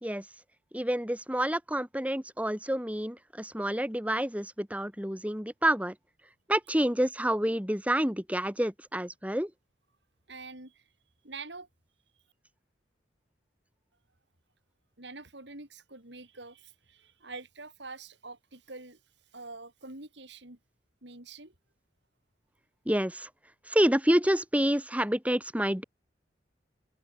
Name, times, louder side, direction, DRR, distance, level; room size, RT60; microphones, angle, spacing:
voice 1, 0.7-5.9 6.5-9.5 22.9-23.3 23.7-25.8, equal, 5° right, 2.8 m, -28 dB
voice 2, 10.3-10.9 11.2-11.7 15.0-19.0 19.3-20.6 21.0-21.5, right 3 dB, 70° right, 4.7 m, -45 dB
head